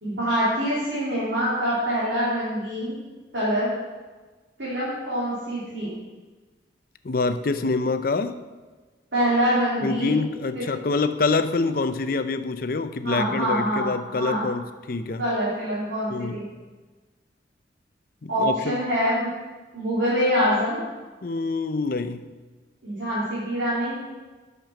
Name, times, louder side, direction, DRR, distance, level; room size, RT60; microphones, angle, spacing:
voice 1, 0.0-2.9 3.3-3.7 4.6-5.9 9.1-10.2 10.5-10.6 13.0-14.4 15.2-16.4 18.3-19.3 19.7-20.8 22.8-24.0, equal, 75° right, -10 dB, 3.2 m, -25 dB
voice 2, 7.0-8.3 9.8-15.2 16.1-16.4 18.2-18.8 21.2-22.3, left 3 dB, 50° left, 10 dB, 0.5 m, -26 dB
9.3 x 6.7 x 6.0 m, 1.3 s
head